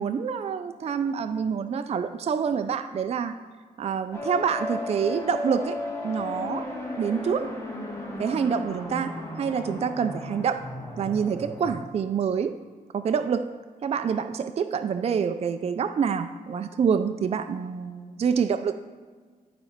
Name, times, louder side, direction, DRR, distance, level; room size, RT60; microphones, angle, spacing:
voice 1, 0.0-3.3 3.8-5.8 6.0-7.6 8.2-10.7 11.0-12.6 12.9-18.8, right 6 dB, 45° right, 9 dB, 0.4 m, -27 dB
sound 1, 4.1-11.7, left 2 dB, 20° left, 1.7 m, -35 dB
11.5 x 4.2 x 5.1 m, 1.5 s
cardioid pair, 100°, 15 cm